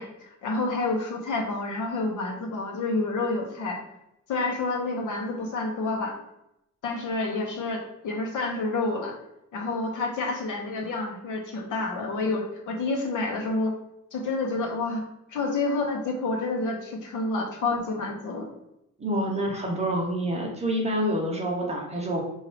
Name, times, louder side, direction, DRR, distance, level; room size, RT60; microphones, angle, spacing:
voice 1, 0.0-3.8 4.3-6.2 6.8-9.2 9.5-13.8 14.1-15.0 15.3-18.5, left 3 dB, 70° left, 2 dB, 1.0 m, -29 dB
voice 2, 19.0-22.2, right 1 dB, 20° right, -1 dB, 0.9 m, -27 dB
5.9 x 2.7 x 3.3 m, 0.84 s
cardioid pair, 165°, 32 cm